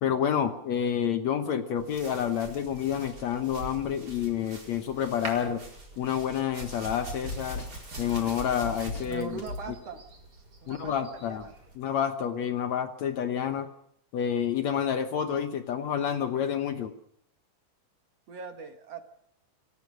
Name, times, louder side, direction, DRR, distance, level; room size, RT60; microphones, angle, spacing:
voice 1, 0.0-5.6 6.0-7.6 8.0-9.4 10.7-11.4 11.8-13.7 14.1-16.9, left 9 dB, 65° left, 9 dB, 2.0 m, -29 dB
sound 1, 1.8-11.8, right 2 dB, 25° right, 5.2 m, -44 dB
Drum kit, 7.2-9.7, left 2 dB, 40° left, 4.7 m, -38 dB
voice 2, 9.0-10.0 10.6-11.5 18.3-19.0, right 5 dB, 55° right, 7 dB, 2.3 m, -41 dB
27.0 x 15.5 x 6.4 m, 0.75 s
omnidirectional pair, 4.0 m